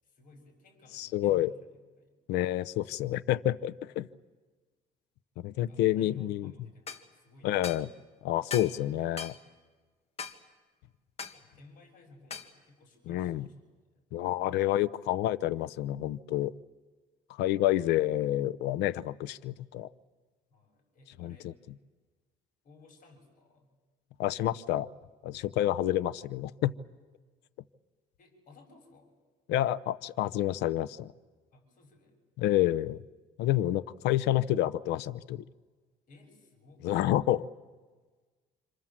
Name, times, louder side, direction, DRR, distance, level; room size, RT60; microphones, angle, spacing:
voice 1, 0.0-1.7 2.0-2.2 5.5-7.9 11.3-13.6 13.9-14.0 20.5-21.5 22.6-23.8 28.2-29.1 31.5-32.2 36.1-36.9, left 2 dB, 55° left, 2 dB, 6.9 m, -57 dB
voice 2, 0.9-1.5 2.3-4.1 5.4-6.5 7.4-7.9 8.2-9.3 13.1-13.5 14.1-16.5 17.3-19.9 21.2-21.4 24.2-24.9 25.2-26.7 29.5-31.1 32.4-33.0 33.4-35.4 36.8-37.5, left 13 dB, 90° left, 17 dB, 0.7 m, -29 dB
sound 1, 6.9-7.0 7.6-7.9 8.5-8.8 9.2-9.4 10.2-10.4 11.2-11.4 12.3-12.5, left 6 dB, 35° left, 1.7 m, -39 dB
27.5 x 26.0 x 7.5 m, 1.4 s
cardioid pair, 110°, 17 cm